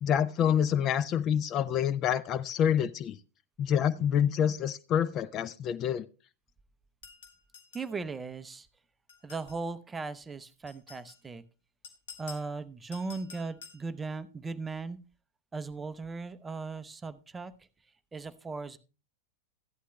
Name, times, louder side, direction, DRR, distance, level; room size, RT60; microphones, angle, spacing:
voice 1, 0.0-3.2 3.6-6.1, left 9 dB, 35° left, 15 dB, 0.4 m, -27 dB
sound 1, 7.0-8.0 9.1-9.6 10.7-11.2 11.8-12.5 12.9-13.9, left 6 dB, 60° left, 2.0 m, -50 dB
voice 2, 7.7-8.7 9.2-11.4 12.2-15.0 15.5-17.5 18.1-18.8, right 4 dB, 15° right, 13 dB, 0.6 m, -38 dB
15.0 x 11.0 x 2.2 m, 0.34 s
figure-of-eight pair, 90°, 0 cm